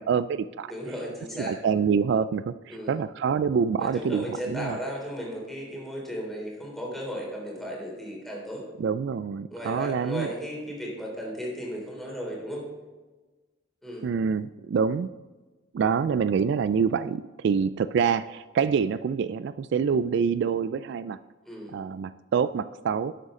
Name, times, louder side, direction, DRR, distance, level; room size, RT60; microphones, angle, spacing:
voice 1, 0.0-0.7 1.4-4.8 8.8-10.3 14.0-15.1 15.7-21.2 21.7-23.1, right 6 dB, 65° right, 15 dB, 0.3 m, -26 dB
voice 2, 0.7-1.6 2.7-2.9 3.8-8.6 9.5-12.7 13.8-14.1 21.4-21.8, equal, ahead, -3 dB, 3.4 m, -35 dB
12.0 x 8.2 x 3.8 m, 1.2 s
head